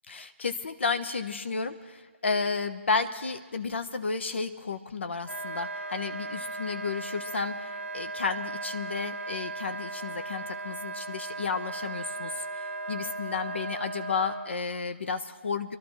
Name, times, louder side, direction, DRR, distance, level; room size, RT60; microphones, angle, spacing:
voice 1, 0.1-15.8, left 4 dB, 60° left, 9 dB, 0.8 m, -32 dB
Wind instrument woodwind instrument, 5.2-14.5, right 3 dB, 75° right, 1.2 m, -37 dB
25.5 x 12.0 x 3.1 m, 1.3 s
figure-of-eight pair, 140°, 7 cm